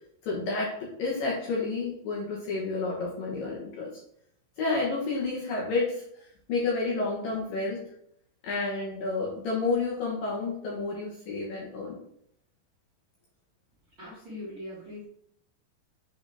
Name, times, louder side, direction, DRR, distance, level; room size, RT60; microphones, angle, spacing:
voice 1, 0.2-3.9 4.6-7.8 8.4-12.0, left 3 dB, 70° left, -4 dB, 2.2 m, -30 dB
voice 2, 14.0-15.1, left 1 dB, 50° right, -10 dB, 1.4 m, -41 dB
7.8 x 3.9 x 3.4 m, 0.69 s
omnidirectional pair, 5.4 m